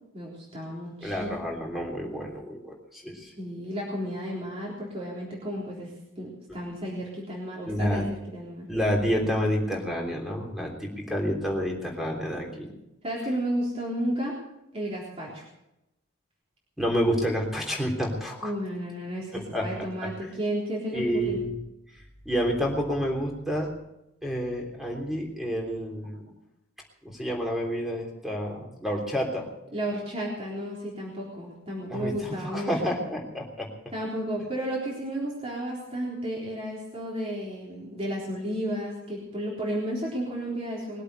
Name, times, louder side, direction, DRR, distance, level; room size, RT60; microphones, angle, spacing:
voice 1, 0.1-1.6 3.4-5.9 6.2-8.0 8.3-8.7 13.0-14.4 14.7-15.4 18.4-21.4 29.7-32.7 33.9-41.0, equal, 30° right, -4 dB, 3.9 m, -32 dB
voice 2, 1.0-3.3 7.7-8.1 8.7-12.7 16.8-18.5 19.3-19.7 20.0-20.1 20.9-21.6 22.2-23.7 24.2-26.2 27.0-29.5 31.9-33.7, equal, ahead, 0 dB, 3.4 m, -29 dB
21.0 x 8.3 x 8.0 m, 0.88 s
head